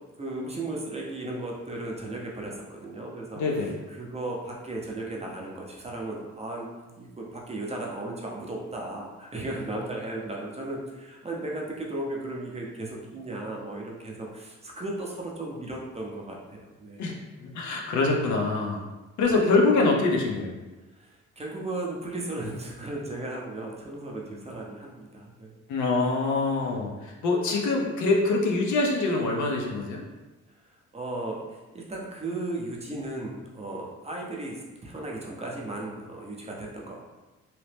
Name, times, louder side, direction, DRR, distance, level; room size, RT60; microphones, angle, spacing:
voice 1, 0.2-6.7 6.9-17.0 19.2-19.4 20.9-25.6 30.9-37.0, right 2 dB, 20° right, -2 dB, 0.6 m, -36 dB
voice 2, 3.3-3.8 17.0-17.1 17.4-18.8 19.2-20.5 25.7-30.0, left 3 dB, 75° left, 0 dB, 0.6 m, -24 dB
2.8 x 2.0 x 3.2 m, 1.1 s
cardioid pair, 90°, 30 cm